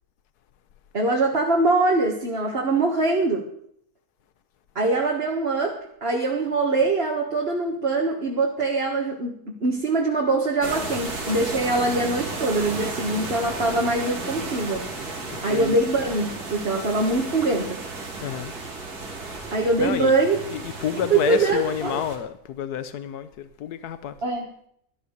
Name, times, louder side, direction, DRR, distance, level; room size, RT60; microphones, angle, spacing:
voice 1, 0.9-3.5 4.8-14.8 15.4-17.8 19.5-20.4 21.1-22.0 24.2-24.5, right 2 dB, 40° right, 1.9 m, -23 dB
sound 1, 10.6-22.2, right 3 dB, 80° right, 3.3 m, -34 dB
voice 2, 15.3-15.8 18.2-18.5 19.8-20.2 20.5-24.2, left 9 dB, 90° left, 1.4 m, -29 dB
13.0 x 12.5 x 6.6 m
omnidirectional pair, 1.6 m